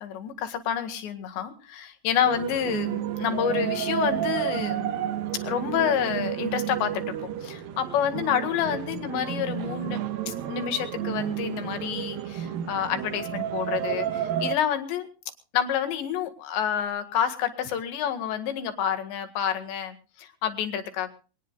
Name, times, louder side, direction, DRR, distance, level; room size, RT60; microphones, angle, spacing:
voice 1, 0.0-5.0 5.4-7.1 7.4-10.0 10.3-15.1 15.5-21.1, left 9 dB, 75° left, 7 dB, 4.0 m, -28 dB
sound 1, 2.2-14.6, right 10 dB, 70° right, 2.4 m, -31 dB
24.5 x 18.5 x 2.4 m, 0.37 s
omnidirectional pair, 5.3 m